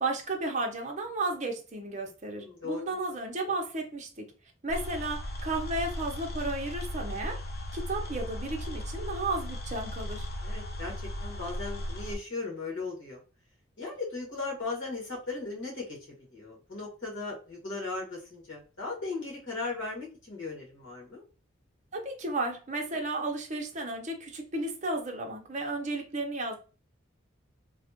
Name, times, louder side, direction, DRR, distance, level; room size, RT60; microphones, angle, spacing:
voice 1, 0.0-4.3 4.6-7.4 7.7-10.3 21.9-26.6, right 2 dB, 35° right, 0.7 m, -33 dB
voice 2, 2.3-2.8 10.4-10.9 11.2-13.2 13.8-16.0 16.3-21.2, left 3 dB, 70° left, 1.7 m, -37 dB
sound 1, 4.7-12.2, left 1 dB, 50° left, 0.6 m, -37 dB
3.3 x 2.4 x 2.8 m
head